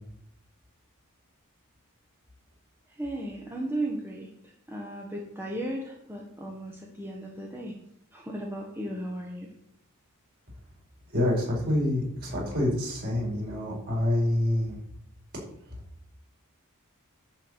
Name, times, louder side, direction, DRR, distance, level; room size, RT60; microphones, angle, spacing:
voice 1, 3.0-7.7 8.1-9.5, right 1 dB, 10° right, -1 dB, 1.3 m, -35 dB
voice 2, 11.1-14.8, left 1 dB, 45° right, -3 dB, 4.8 m, -27 dB
10.5 x 4.8 x 8.0 m, 0.72 s
head